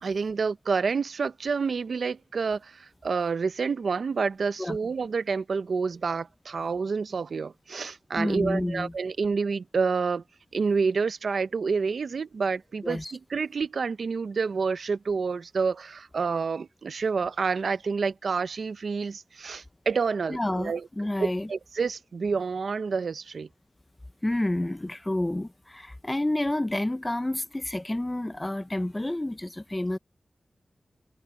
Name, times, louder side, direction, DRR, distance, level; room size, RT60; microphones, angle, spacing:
voice 1, 0.0-10.2 10.5-20.9 21.2-23.5, right 5 dB, 80° right, 0.7 m, -28 dB
voice 2, 8.2-8.9 12.8-13.1 20.3-21.5 24.2-30.0, left 1 dB, 20° left, 0.5 m, -29 dB
wide cardioid pair, 80°, 0 cm